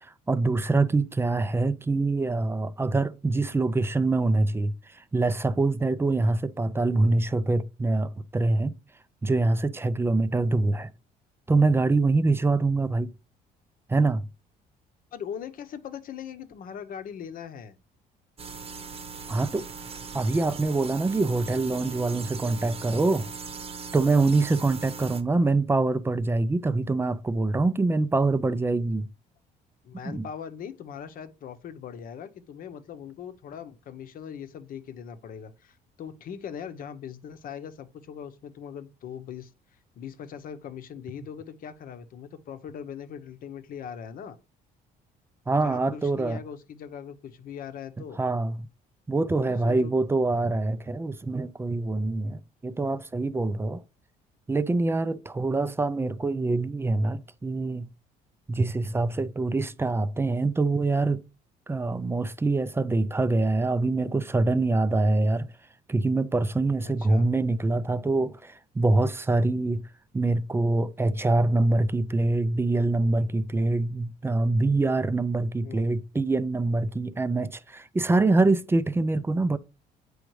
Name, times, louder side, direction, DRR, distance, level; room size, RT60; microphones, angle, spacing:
voice 1, 0.3-8.7 9.2-10.9 11.5-13.1 13.9-14.3 19.3-19.7 20.1-23.3 23.9-29.1 30.0-30.3 45.5-46.4 48.2-48.6 49.1-53.8 54.5-57.9 58.5-61.2 61.7-65.5 65.9-69.8 70.1-79.6, right 3 dB, 15° right, 0.4 m, -25 dB
voice 2, 15.1-17.8 25.4-25.6 29.8-39.5 40.0-44.4 45.6-48.2 49.4-49.9 66.8-67.3 75.6-75.9, left 8 dB, 55° left, 0.8 m, -40 dB
sound 1, 18.4-25.2, right 5 dB, 35° right, 0.9 m, -39 dB
7.9 x 4.9 x 3.1 m
cardioid pair, 110°, 17 cm